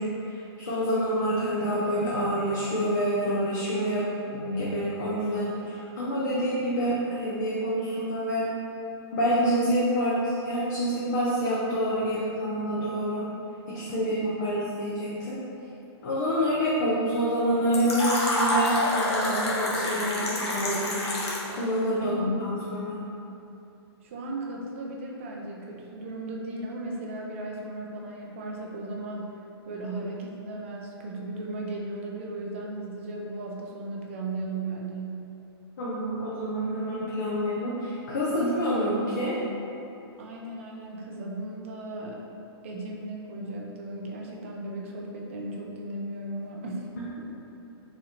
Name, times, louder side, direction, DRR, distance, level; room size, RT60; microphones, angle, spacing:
voice 1, 0.0-8.5 9.1-13.2 13.7-15.4 16.0-20.9 21.6-23.0 35.8-39.4, equal, 40° left, -8 dB, 0.5 m, -27 dB
voice 2, 13.9-14.6 21.9-22.4 24.0-29.4 29.7-35.2 40.2-42.2 42.6-46.9, right 2 dB, 30° right, -1 dB, 0.4 m, -36 dB
Fill (with liquid), 17.7-21.6, left 1 dB, 75° left, 0.9 m, -27 dB
4.1 x 2.9 x 2.6 m, 2.8 s
hypercardioid pair, 175°, 14 cm